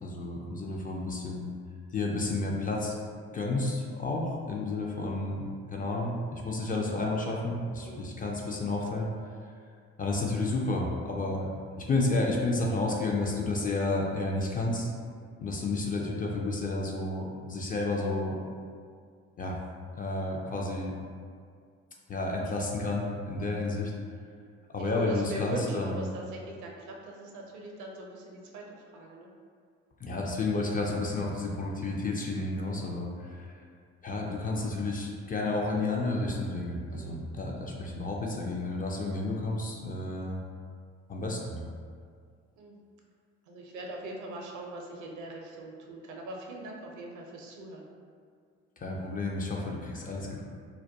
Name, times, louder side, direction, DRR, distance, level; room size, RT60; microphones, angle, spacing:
voice 1, 0.0-1.5 1.9-3.0 3.3-9.1 10.0-11.5 11.8-14.9 15.4-18.4 19.4-19.6 19.9-20.9 22.1-23.9 24.7-26.0 30.0-33.6 34.0-40.4 41.1-41.7 48.8-50.4, left 2 dB, 25° left, -2 dB, 0.3 m, -31 dB
voice 2, 7.7-8.1 24.8-29.3 36.9-37.2 42.6-42.8 43.5-47.9, right 2 dB, 60° right, 0 dB, 0.5 m, -41 dB
2.2 x 2.2 x 2.6 m, 2.1 s
hypercardioid pair, 50°, 33 cm